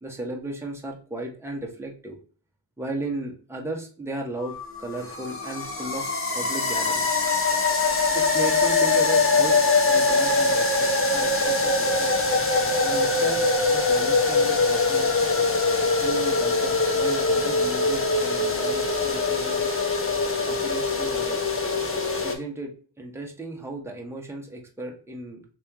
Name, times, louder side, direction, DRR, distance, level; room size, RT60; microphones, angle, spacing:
voice 1, 0.0-2.2 2.8-7.2 8.1-9.6 9.9-12.2 12.8-15.1 16.0-19.8 20.3-21.5 22.2-25.4, right 2 dB, 5° right, 0 dB, 1.0 m, -35 dB
sound 1, 4.4-22.3, left 3 dB, 30° left, 0.9 m, -23 dB
3.1 x 3.0 x 3.6 m, 0.39 s
supercardioid pair, 45°, 47 cm